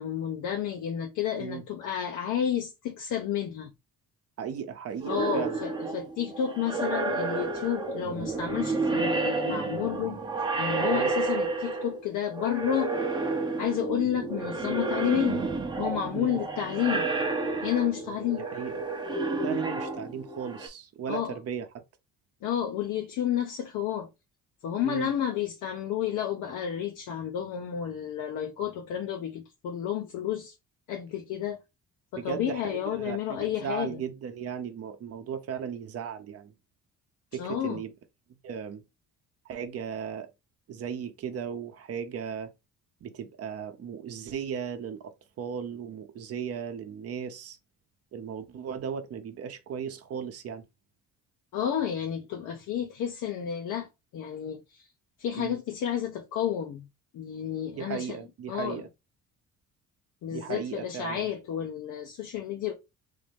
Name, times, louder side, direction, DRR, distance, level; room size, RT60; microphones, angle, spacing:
voice 1, 0.0-3.7 5.1-10.2 10.6-13.0 13.6-15.5 15.8-17.1 17.6-18.5 21.1-21.4 22.4-24.1 24.6-30.5 30.9-31.6 32.1-34.0 37.3-37.8 51.5-54.9 55.2-56.9 57.1-58.2 58.5-58.8 60.2-62.7, left 9 dB, 75° left, 0.8 m, -31 dB
voice 2, 4.4-5.6 10.9-11.2 16.1-16.4 18.4-18.8 19.4-21.7 24.8-25.1 32.2-36.5 37.3-37.9 38.4-38.8 39.5-40.3 40.7-42.5 43.0-45.1 45.4-47.6 48.1-50.6 55.3-55.6 57.7-58.9 60.3-61.3, right 7 dB, 50° right, 0.7 m, -36 dB
sound 1, 5.0-12.1 12.3-20.7, right 3 dB, 15° right, 0.7 m, -30 dB
3.5 x 2.7 x 3.4 m
cardioid pair, 140°, 31 cm